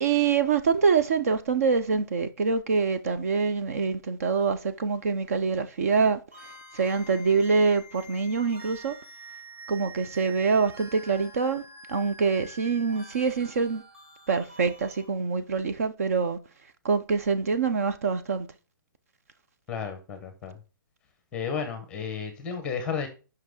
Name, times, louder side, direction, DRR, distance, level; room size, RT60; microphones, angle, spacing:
voice 1, 0.0-6.2 6.7-9.0 9.7-11.6 11.9-13.8 14.3-16.4 16.8-18.5, right 5 dB, 45° right, 0.7 m, -25 dB
sound 1, 6.3-15.0, right 1 dB, 15° right, 2.3 m, -47 dB
voice 2, 19.7-20.5 21.3-23.1, left 6 dB, 10° left, 0.9 m, -32 dB
5.8 x 5.7 x 6.5 m
hypercardioid pair, 175°, 11 cm